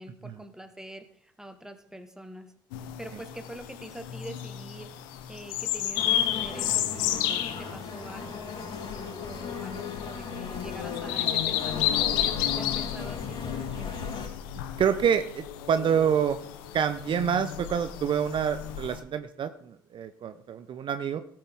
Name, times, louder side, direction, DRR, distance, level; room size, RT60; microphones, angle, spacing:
voice 1, 0.0-2.5 3.0-4.9 5.3-8.6 9.2-14.0, right 1 dB, 5° right, 8 dB, 1.6 m, -44 dB
sound 1, 2.7-19.0, left 11 dB, 75° left, 0.9 m, -32 dB
sound 2, 5.9-14.3, left 4 dB, 45° left, 4.5 m, -39 dB
voice 2, 14.8-16.4 16.7-21.2, right 8 dB, 45° right, 11 dB, 0.7 m, -27 dB
17.5 x 7.7 x 3.6 m, 0.64 s
hypercardioid pair, 55°, 11 cm